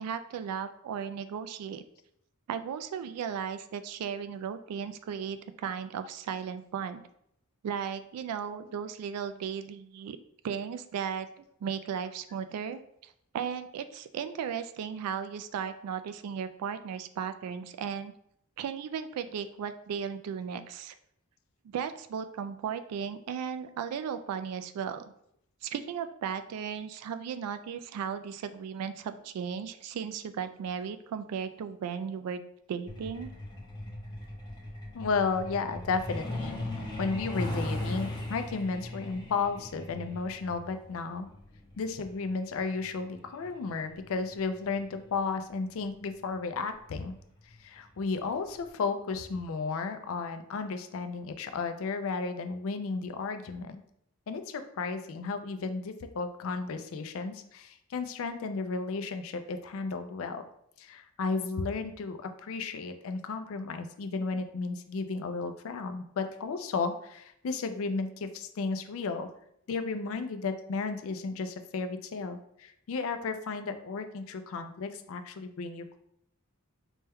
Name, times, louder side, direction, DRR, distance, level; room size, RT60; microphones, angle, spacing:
voice 1, 0.0-1.8 2.5-7.0 7.6-10.2 10.4-11.3 11.6-18.1 18.6-20.9 21.6-25.0 25.6-32.4 32.7-33.3, right 7 dB, 85° right, 13 dB, 0.3 m, -36 dB
Truck, 32.9-45.2 46.4-46.6 47.0-47.1 47.5-47.8 48.1-48.2 48.7-48.8, left 1 dB, 20° left, 0.7 m, -38 dB
voice 2, 34.9-36.6 37.0-41.3 41.8-47.2 47.6-53.8 54.3-60.4 60.8-69.3 69.7-76.0, left 4 dB, 65° left, 8 dB, 0.4 m, -33 dB
4.2 x 2.2 x 3.4 m, 0.72 s
head